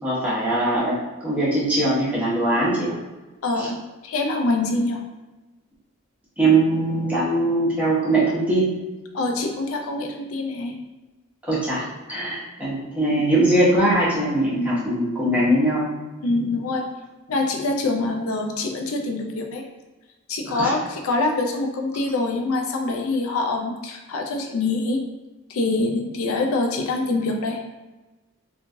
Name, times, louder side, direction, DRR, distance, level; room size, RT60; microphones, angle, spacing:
voice 1, 0.0-2.9 3.6-3.7 6.4-8.7 11.5-15.9 20.5-20.7, right 1 dB, 5° right, -9 dB, 0.8 m, -21 dB
voice 2, 3.4-3.8 4.0-5.0 9.1-10.8 14.6-14.8 15.2-15.5 16.2-16.9 17.3-19.6 20.3-25.0 25.5-27.6, left 2 dB, 80° left, 3 dB, 0.4 m, -25 dB
3.0 x 2.3 x 2.5 m, 1.2 s
head